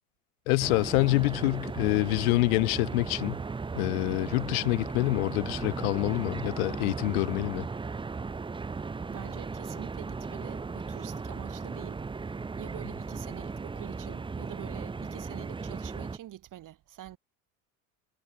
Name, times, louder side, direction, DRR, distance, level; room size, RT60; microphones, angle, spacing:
voice 1, 0.5-3.4 3.7-7.7, left 26 dB, 75° left, 0.7 m, -26 dB
sound 1, 0.6-16.2, right 4 dB, 10° right, 0.7 m, -36 dB
voice 2, 9.1-12.0 12.6-17.2, right 13 dB, 45° right, 2.5 m, -45 dB
supercardioid pair, 95°, 43 cm